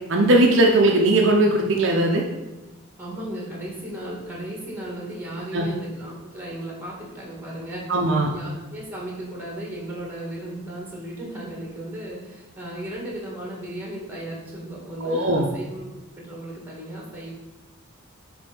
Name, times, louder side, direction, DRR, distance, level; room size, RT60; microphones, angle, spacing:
voice 1, 0.1-2.2 5.5-5.7 7.9-8.3 15.0-15.5, right 1 dB, 60° right, 0 dB, 0.7 m, -19 dB
voice 2, 3.0-15.9 16.2-17.3, right 1 dB, 10° right, -3 dB, 1.7 m, -35 dB
6.8 x 3.4 x 5.4 m, 1.1 s
head